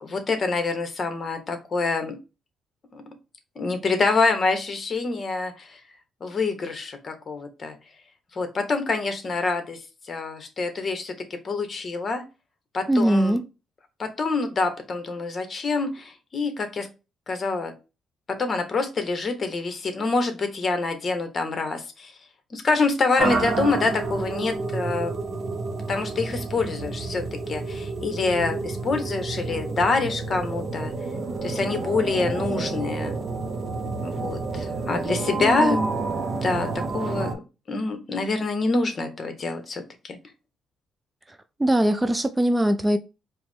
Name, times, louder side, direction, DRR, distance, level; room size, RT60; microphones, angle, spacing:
voice 1, 0.0-2.2 2.9-3.0 3.6-5.8 6.2-7.7 8.3-11.1 11.4-12.2 12.7-13.4 14.0-16.9 17.3-17.7 18.3-22.1 22.5-25.1 25.9-30.9 31.4-33.1 34.0-35.8 36.4-36.7 36.9-37.3 37.7-40.2, left 3 dB, 40° left, 0.9 m, -26 dB
voice 2, 12.9-13.4 35.4-35.9 41.6-43.0, right 1 dB, 15° right, 0.3 m, -21 dB
sound 1, 23.2-37.3, right 3 dB, 50° right, 0.7 m, -30 dB
4.6 x 2.0 x 3.5 m
cardioid pair, 90°, 0 cm